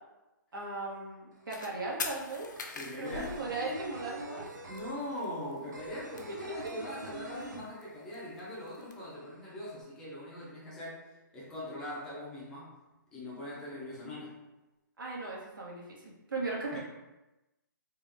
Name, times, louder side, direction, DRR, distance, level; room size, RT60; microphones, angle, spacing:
voice 1, 0.5-2.5 3.0-4.5 15.0-16.8, right 2 dB, 80° right, -4 dB, 1.4 m, -37 dB
sound 1, 1.3-1.4 1.7-8.3 8.5-8.6 8.9-9.7, right 3 dB, 60° right, 0.7 m, -45 dB
sound 2, 1.5-1.7 2.0-4.1 4.5-4.6 4.7-4.8 5.1-5.6 5.9-7.1 7.4-8.9, left 4 dB, 65° left, 0.6 m, -41 dB
voice 2, 2.7-3.4 4.6-11.1 11.3-12.8 13.1-14.4 16.7-16.8, left 1 dB, 5° left, -7 dB, 0.4 m, -41 dB
3.6 x 2.3 x 3.3 m, 1.0 s
hypercardioid pair, 175°, 11 cm